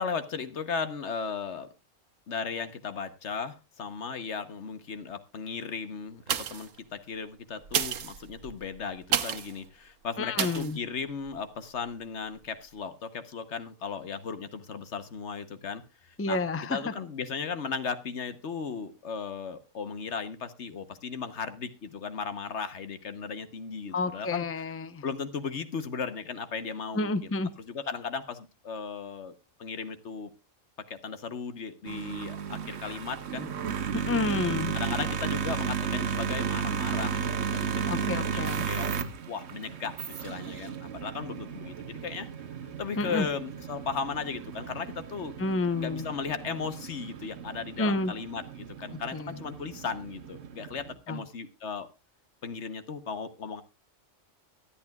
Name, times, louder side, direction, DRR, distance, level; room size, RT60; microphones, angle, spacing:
voice 1, 0.0-1.7 2.3-16.4 16.7-24.4 25.0-30.3 30.9-33.5 34.7-38.9 39.3-42.3 42.8-45.3 45.8-51.9 52.4-53.6, left 5 dB, 65° left, 11 dB, 1.3 m, -36 dB
sound 1, 6.2-6.8 7.6-9.6 10.4-10.7 11.3-11.4, right 9 dB, 90° right, 1.2 m, -31 dB
voice 2, 10.2-10.8 16.2-16.8 23.9-25.0 26.9-27.5 33.9-34.8 37.9-38.7 43.0-43.3 45.4-46.0 47.8-48.1 49.1-49.4 51.1-51.2, left 3 dB, 15° left, 11 dB, 0.7 m, -29 dB
sound 2, 31.9-50.9, right 7 dB, 60° right, 1.1 m, -34 dB
24.0 x 8.6 x 2.3 m, 0.26 s
omnidirectional pair, 1.3 m